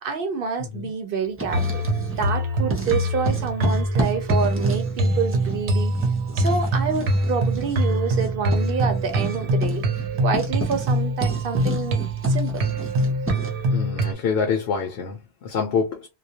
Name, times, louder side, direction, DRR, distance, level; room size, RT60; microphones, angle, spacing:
voice 1, 0.0-1.8 2.1-5.9 6.3-9.8 10.2-12.0 12.3-12.6, right 5 dB, 65° right, 0.7 m, -27 dB
voice 2, 0.6-0.9 13.7-16.1, left 5 dB, 75° left, 0.9 m, -26 dB
Writing, 1.2-2.4 2.7-13.6, right 1 dB, 15° right, 0.5 m, -33 dB
sound 1, 1.5-14.1, right 1 dB, 90° right, 0.9 m, -24 dB
2.3 x 2.1 x 2.7 m
omnidirectional pair, 1.1 m